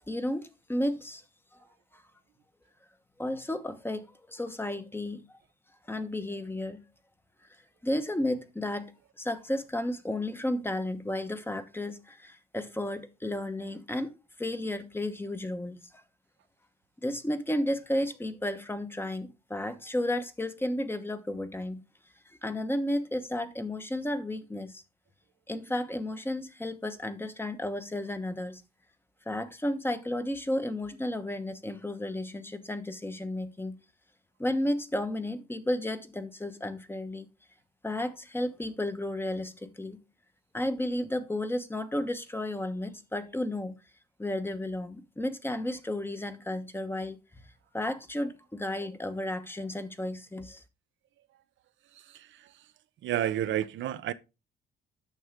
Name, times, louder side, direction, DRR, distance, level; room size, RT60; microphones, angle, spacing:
voice 1, 0.1-1.2 1.9-2.0 3.2-5.2 5.9-6.8 7.8-8.9 9.2-16.0 17.0-21.8 22.3-24.8 25.5-28.6 29.3-33.8 34.4-37.3 37.8-40.0 40.5-43.8 44.2-47.2 47.7-50.6, left 1 dB, 10° left, 1.1 m, -33 dB
voice 2, 52.1-52.5 53.0-54.1, right 11 dB, 70° right, 0.7 m, -31 dB
9.2 x 6.3 x 3.6 m
cardioid pair, 90°, 20 cm